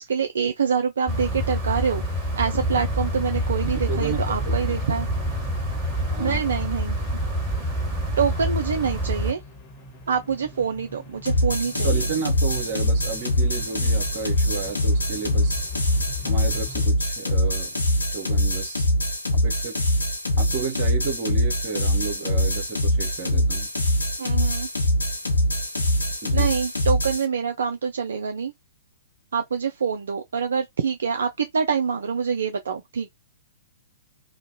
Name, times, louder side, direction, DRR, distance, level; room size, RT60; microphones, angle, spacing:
voice 1, 0.0-5.1 6.2-7.0 8.2-9.4 10.1-11.9 24.2-24.7 26.3-28.5 29.3-33.1, right 6 dB, 60° right, 0.4 m, -26 dB
sound 1, 1.1-9.3, equal, 5° right, 1.5 m, -27 dB
sound 2, 2.5-16.9, left 4 dB, 15° left, 1.2 m, -38 dB
voice 2, 3.7-4.7 6.1-6.4 11.7-15.6 16.2-17.8 18.1-18.8 19.3-19.8 20.4-23.7 26.2-26.5, right 5 dB, 40° right, 1.0 m, -32 dB
sound 3, 11.3-27.3, left 1 dB, 75° left, 0.7 m, -23 dB
2.5 x 2.1 x 2.7 m
figure-of-eight pair, 110°, 0 cm